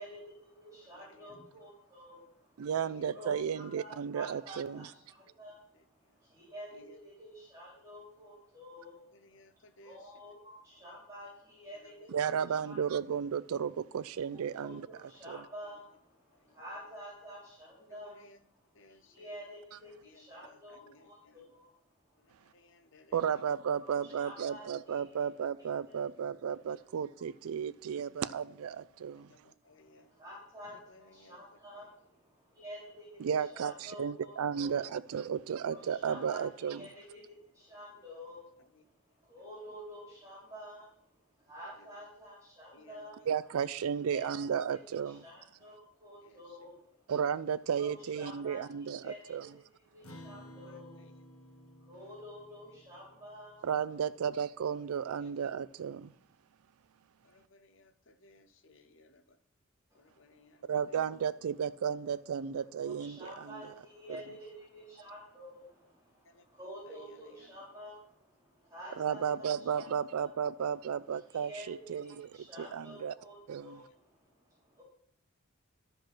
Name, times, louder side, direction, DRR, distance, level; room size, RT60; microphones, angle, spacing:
voice 1, 0.0-2.7 3.0-12.8 14.3-18.3 18.9-22.6 23.8-25.0 29.6-34.7 35.7-38.9 39.2-43.2 44.0-44.5 45.0-47.1 47.7-49.6 49.9-51.1 51.9-53.7 59.9-60.7 62.6-69.9 70.2-70.3 71.3-74.8, equal, 15° right, 3.6 m, -50 dB
voice 2, 0.8-1.4 2.8-3.1 5.7-6.2 6.7-7.0 9.1-10.1 11.7-12.1 15.6-15.8 16.3-16.6 17.9-18.5 18.7-19.4 20.0-21.6 22.2-23.6 29.1-30.1 30.7-31.9 38.7-38.8 39.1-39.5 41.6-42.0 42.7-43.3 46.2-46.7 50.2-51.1 52.7-53.0 54.0-54.1 55.2-55.4 57.2-59.4 59.9-61.0 66.2-67.7 69.3-69.4 73.9-74.0, left 2 dB, 60° left, 0.8 m, -62 dB
voice 3, 2.6-4.9 12.1-14.9 15.3-15.4 23.1-29.3 33.2-36.8 43.3-45.2 47.1-49.5 53.6-56.1 60.7-63.6 69.0-72.3 72.6-73.1 73.5-73.8, right 7 dB, 85° right, 0.4 m, -34 dB
Acoustic guitar, 50.0-54.7, left 1 dB, 85° left, 1.6 m, -54 dB
11.5 x 5.0 x 6.1 m
head